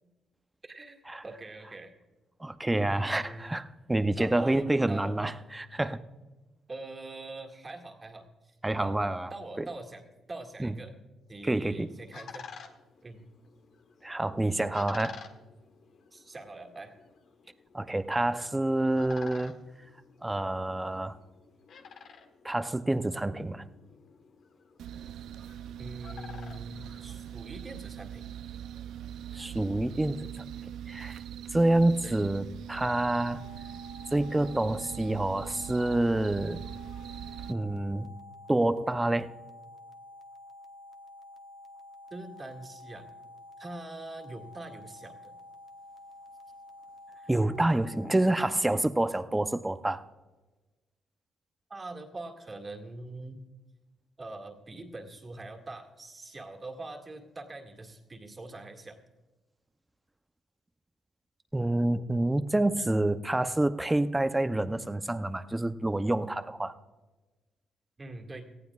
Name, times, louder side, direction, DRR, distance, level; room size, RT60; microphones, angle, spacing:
voice 1, 0.6-1.9 2.8-3.6 4.1-5.2 6.7-9.0 9.3-11.0 11.3-12.5 13.0-13.2 16.1-16.9 25.8-28.2 32.0-32.2 42.1-43.1 43.6-45.4 47.1-47.3 51.7-53.4 54.2-59.0 68.0-68.5, right 2 dB, 30° right, 3 dB, 2.0 m, -43 dB
voice 2, 2.4-6.0 8.6-9.3 9.6-9.7 10.6-10.7 11.4-11.9 14.0-15.2 17.7-19.6 20.2-21.2 22.4-23.6 29.3-30.3 30.9-31.2 31.5-33.4 34.1-36.6 37.5-38.1 38.5-39.3 47.3-50.0 61.5-66.7, right 1 dB, 10° right, 11 dB, 0.7 m, -28 dB
sound 1, 11.5-27.7, left 6 dB, 65° left, 1.3 m, -51 dB
sound 2, 24.8-37.5, right 10 dB, 80° right, 0.4 m, -42 dB
sound 3, 32.9-48.3, left 1 dB, 40° left, 1.1 m, -50 dB
18.5 x 14.5 x 2.4 m, 1.2 s
cardioid pair, 90°, 0 cm